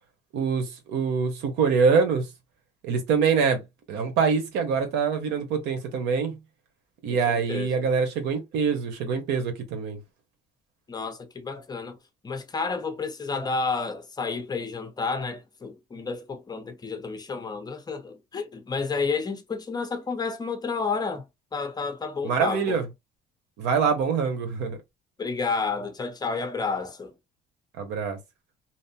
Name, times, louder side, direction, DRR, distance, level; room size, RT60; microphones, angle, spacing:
voice 1, 0.3-2.3 2.8-3.6 3.9-6.4 7.0-10.0 22.2-22.8 23.6-24.8 27.8-28.2, right 5 dB, 85° right, 1.0 m, -24 dB
voice 2, 7.1-7.9 10.9-12.0 12.2-21.3 21.5-22.8 25.2-27.1, left 4 dB, 25° left, 0.7 m, -31 dB
2.8 x 2.0 x 2.7 m
cardioid pair, 110°, 17 cm